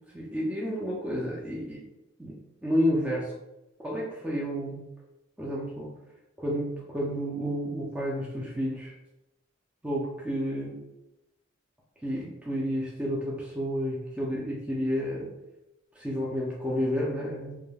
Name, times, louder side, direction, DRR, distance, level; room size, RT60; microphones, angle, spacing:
voice 1, 0.1-1.8 2.2-3.3 3.8-4.9 5.4-6.0 6.4-8.9 9.8-10.8 12.0-15.3 16.0-17.6, equal, 5° right, -5 dB, 0.3 m, -30 dB
2.2 x 2.1 x 3.1 m, 0.95 s
head